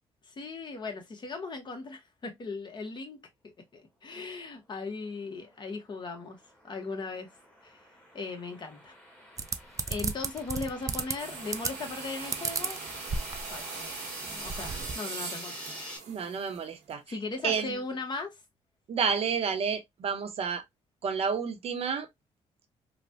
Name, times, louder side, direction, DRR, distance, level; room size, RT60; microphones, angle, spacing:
voice 1, 0.2-3.2 3.4-6.4 6.6-7.3 7.6-7.8 8.1-8.9 9.9-12.8 13.5-14.0 14.3-15.8 17.1-18.4, left 3 dB, 40° left, 1.0 m, -38 dB
sound 1, 5.5-16.0, left 1 dB, 10° left, 1.3 m, -46 dB
sound 2, 9.4-11.1 11.5-12.0 12.3-13.6 14.0-14.1 14.3-14.9, right 4 dB, 25° right, 0.4 m, -33 dB
sound 3, 11.2-16.9, right 6 dB, 85° right, 1.0 m, -41 dB
voice 2, 16.1-17.0 17.4-17.7 18.9-20.6 21.0-22.1, right 6 dB, 55° right, 0.7 m, -30 dB
3.1 x 2.2 x 2.6 m
cardioid pair, 85°, 12 cm